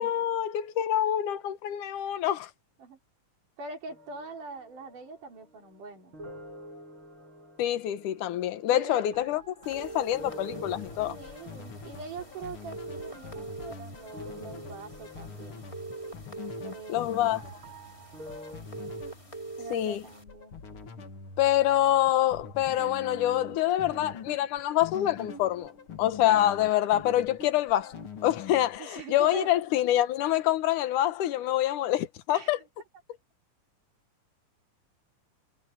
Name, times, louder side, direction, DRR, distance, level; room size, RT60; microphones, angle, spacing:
voice 1, 0.0-2.5 7.6-11.2 16.9-17.4 19.7-20.0 21.4-25.7 26.0-28.0 28.2-32.6, left 12 dB, 75° left, 2.7 m, -26 dB
voice 2, 3.6-6.1 8.7-9.1 11.1-15.7 16.6-17.2 19.6-20.6 28.8-29.5 32.3-32.5, right 4 dB, 75° right, 5.4 m, -43 dB
sound 1, 3.9-18.6, equal, 40° right, 8.0 m, -49 dB
sound 2, 9.6-20.2, right 2 dB, 10° left, 2.5 m, -44 dB
sound 3, 10.2-28.8, left 5 dB, 45° left, 2.8 m, -45 dB
omnidirectional pair, 3.7 m